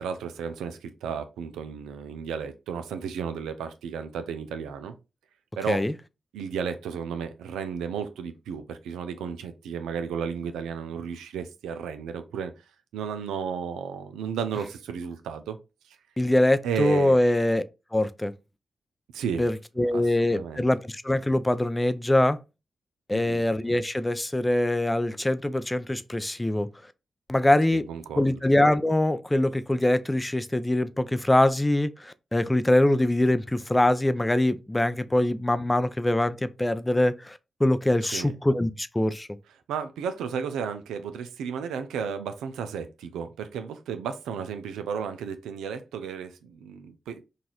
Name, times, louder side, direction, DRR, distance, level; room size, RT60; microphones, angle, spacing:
voice 1, 0.0-5.0 5.6-5.8 6.3-12.5 12.9-15.6 15.8-16.0 16.6-17.2 19.1-19.5 19.9-20.7 23.1-23.4 27.7-28.4 38.1-38.3 39.7-47.2, right 7 dB, 90° right, 0.4 m, -33 dB
voice 2, 16.2-17.6 17.9-18.3 19.4-22.4 23.1-26.7 27.3-27.8 28.2-39.3, left 1 dB, 15° left, 0.4 m, -23 dB
3.9 x 2.5 x 2.9 m
supercardioid pair, 40°, 0 cm